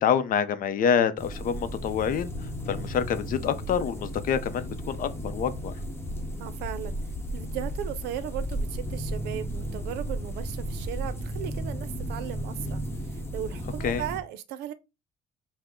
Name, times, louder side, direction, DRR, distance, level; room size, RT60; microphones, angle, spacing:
voice 1, 0.0-2.3 2.7-5.7 13.8-14.0, left 7 dB, 55° left, 0.6 m, -26 dB
sound 1, 1.2-14.2, equal, 15° left, 1.0 m, -34 dB
voice 2, 6.4-7.0 7.3-12.8 13.1-14.7, right 11 dB, 90° right, 0.6 m, -36 dB
5.9 x 2.1 x 3.6 m
cardioid pair, 110°, 17 cm